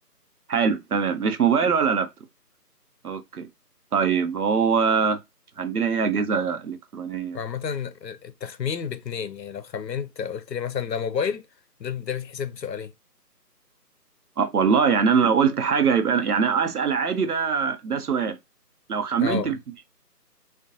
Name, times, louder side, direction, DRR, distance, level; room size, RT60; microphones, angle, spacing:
voice 1, 0.5-2.1 3.0-3.5 3.9-5.2 5.6-7.4 14.4-18.4 18.9-19.6, right 6 dB, 65° right, 0.6 m, -22 dB
voice 2, 7.3-11.4 11.8-12.9 19.2-19.5, left 7 dB, 90° left, 0.6 m, -30 dB
2.6 x 2.1 x 2.5 m
figure-of-eight pair, 155°, 49 cm